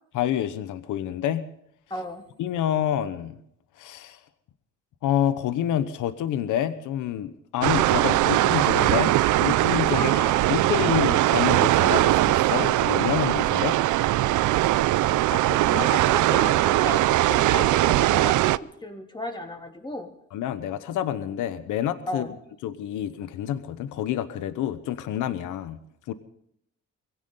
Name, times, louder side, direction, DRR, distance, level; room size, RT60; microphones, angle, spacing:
voice 1, 0.1-1.4 2.4-3.4 3.8-4.2 5.0-10.1 10.5-13.8 20.3-22.3 22.6-25.8 26.1-26.2, left 10 dB, 85° left, 12 dB, 1.1 m, -28 dB
voice 2, 1.9-2.2 9.9-10.6 15.3-20.1 22.1-22.3, left 2 dB, 15° left, 2 dB, 3.1 m, -34 dB
sound 1, 7.6-18.6, right 16 dB, 80° right, 0.5 m, -21 dB
22.5 x 16.5 x 3.9 m, 0.71 s
cardioid pair, 90°, 30 cm